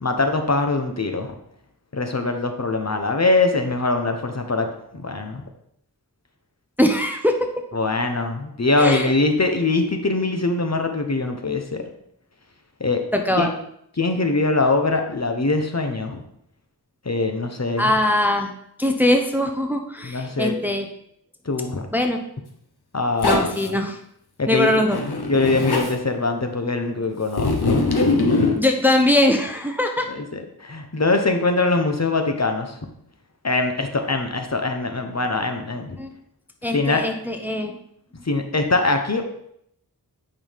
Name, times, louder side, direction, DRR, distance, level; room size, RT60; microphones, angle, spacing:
voice 1, 0.0-1.3 1.9-4.7 4.9-5.4 7.7-11.8 12.8-13.0 13.4-13.5 14.0-16.2 17.0-17.9 20.0-20.5 21.5-21.9 22.9-23.8 24.4-24.8 25.3-27.8 30.2-32.7 33.4-36.0 36.7-37.0 38.2-39.2, left 3 dB, 40° left, 5 dB, 1.0 m, -22 dB
voice 2, 6.8-7.5 8.8-9.1 13.1-13.5 17.8-18.5 18.8-20.9 21.9-22.2 23.2-24.0 24.5-25.0 28.5-30.1 36.0-36.1 36.6-37.7, left 1 dB, 5° right, 4 dB, 0.7 m, -21 dB
Zipper (clothing), 23.2-23.7 24.9-25.9 27.3-28.6, left 3 dB, 70° left, 1.1 m, -21 dB
8.8 x 5.5 x 3.5 m, 0.73 s
wide cardioid pair, 65°, 40 cm